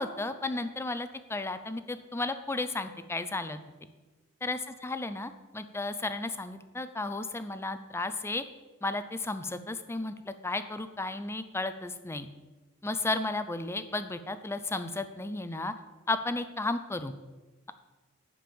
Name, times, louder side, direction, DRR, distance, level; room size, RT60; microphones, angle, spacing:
voice 1, 0.0-3.6 4.4-8.4 8.8-12.3 12.8-15.7 16.1-17.1, left 2 dB, 10° left, 11 dB, 0.5 m, -33 dB
10.5 x 5.4 x 7.0 m, 1.3 s
head